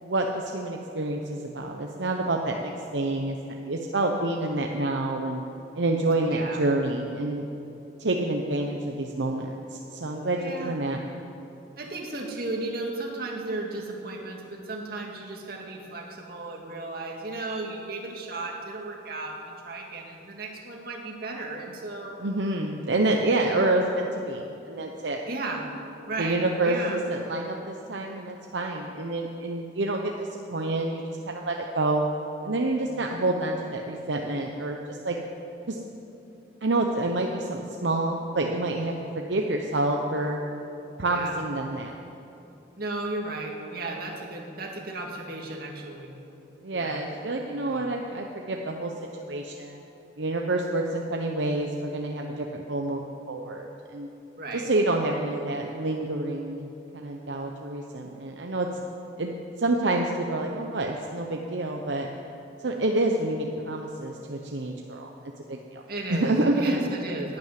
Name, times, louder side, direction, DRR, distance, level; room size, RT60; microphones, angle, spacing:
voice 1, 0.0-3.4 3.6-5.4 5.8-7.5 8.0-11.0 22.2-25.2 26.2-32.1 32.4-35.2 35.7-35.8 36.6-40.4 41.0-41.9 46.6-48.9 49.3-49.8 50.2-54.1 54.5-56.7 56.9-58.7 59.2-62.1 62.6-65.1 65.5-65.8 66.1-66.8, right 2 dB, 75° right, 2 dB, 0.9 m, -28 dB
voice 2, 6.3-6.6 10.3-10.8 11.8-22.2 23.4-23.6 25.3-25.6 26.1-27.0 41.1-41.4 42.8-46.1 46.7-47.0 47.4-47.8 54.4-54.7 65.9-67.4, right 2 dB, 55° right, 0 dB, 2.2 m, -35 dB
11.5 x 10.5 x 9.2 m, 2.9 s
head